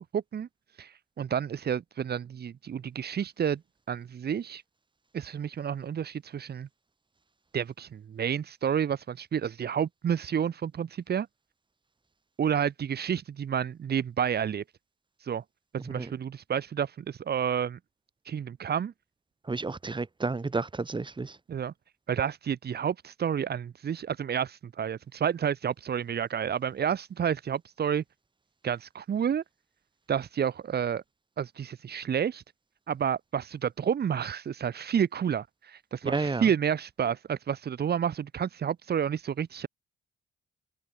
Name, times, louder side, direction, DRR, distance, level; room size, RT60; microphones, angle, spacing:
voice 1, 0.1-0.5 0.8-3.6 3.9-4.6 5.1-6.7 7.5-11.3 12.4-14.6 15.2-15.4 15.7-17.8 18.3-18.9 21.5-21.7 22.1-28.0 28.6-29.4 30.1-31.0 31.4-32.4 32.9-39.7, right 8 dB, 55° right, 4.5 m, -30 dB
voice 2, 15.8-16.1 19.4-21.4 36.0-36.5, right 3 dB, 25° right, 4.2 m, -31 dB
cardioid pair, 90°, 20 cm